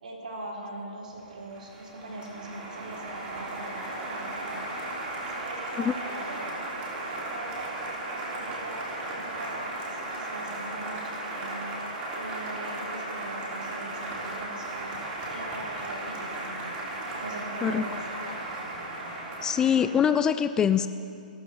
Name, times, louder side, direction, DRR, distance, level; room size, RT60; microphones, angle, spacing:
voice 1, 0.0-4.7 5.2-6.5 7.0-11.8 12.1-14.9 15.3-16.6 17.2-18.0, right 2 dB, 65° right, -3 dB, 4.4 m, -41 dB
Applause, 1.2-20.1, right 2 dB, 25° right, 3.5 m, -36 dB
voice 2, 19.4-20.9, left 8 dB, 15° left, 11 dB, 0.3 m, -23 dB
29.0 x 13.0 x 3.0 m, 2.6 s
figure-of-eight pair, 125°, 5 cm